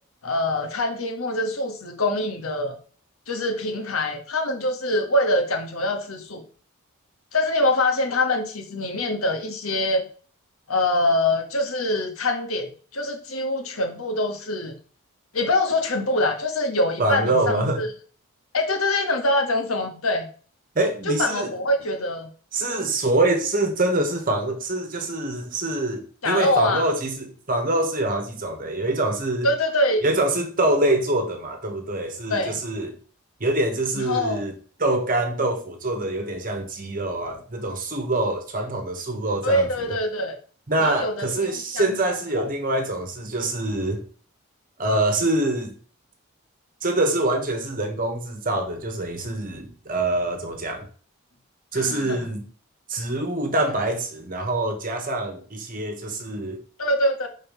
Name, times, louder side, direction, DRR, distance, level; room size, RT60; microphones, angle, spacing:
voice 1, 0.2-2.8 3.3-6.4 7.3-10.1 10.7-14.7 15.3-17.9 18.5-20.3 21.0-22.3 26.2-26.9 29.4-30.0 32.3-32.6 33.9-34.4 39.4-40.4 40.8-42.5 51.7-52.2 56.8-57.3, left 1 dB, 80° left, 1.4 m, -24 dB
voice 2, 17.0-17.8 20.7-21.5 22.5-29.5 30.0-33.0 33.4-34.5 34.8-39.9 40.7-44.0 44.8-45.8 46.8-50.9 51.7-52.5 52.9-56.6, right 2 dB, 40° right, 1.2 m, -25 dB
5.6 x 4.0 x 5.5 m
head